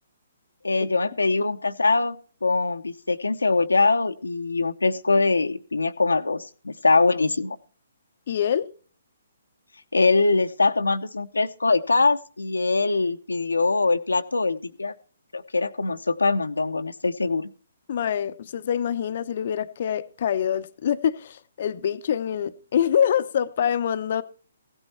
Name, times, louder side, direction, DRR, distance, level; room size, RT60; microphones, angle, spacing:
voice 1, 0.6-7.6 9.9-14.9 15.3-17.5, left 3 dB, 85° left, 0.8 m, -23 dB
voice 2, 8.3-8.7 17.9-24.2, left 9 dB, 50° left, 0.7 m, -25 dB
16.0 x 9.9 x 4.3 m
figure-of-eight pair, 135°, 0 cm